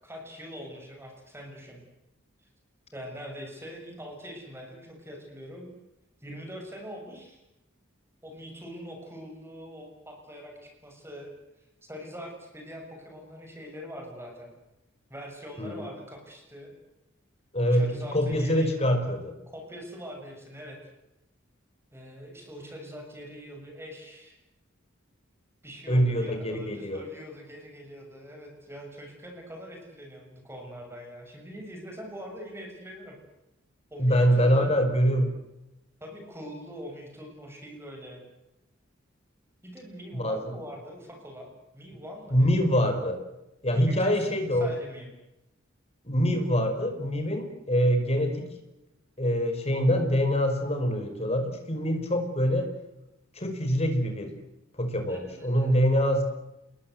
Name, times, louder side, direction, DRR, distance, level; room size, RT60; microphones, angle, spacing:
voice 1, 0.0-1.8 2.9-5.7 6.2-7.4 8.2-11.3 11.6-14.5 15.1-16.7 17.7-18.7 19.5-20.8 21.9-24.3 25.6-33.2 33.9-34.7 36.0-38.2 39.6-41.5 41.7-42.8 43.7-44.2 44.5-45.1 55.1-55.8, equal, 10° right, 2 dB, 6.8 m, -43 dB
voice 2, 15.6-15.9 17.5-19.3 25.9-27.0 34.0-35.3 40.1-40.4 42.3-43.2 43.6-44.7 46.0-48.5 49.2-52.7 53.4-54.4 54.8-56.2, equal, 30° left, 6 dB, 5.2 m, -24 dB
28.5 x 21.0 x 7.8 m, 0.92 s
head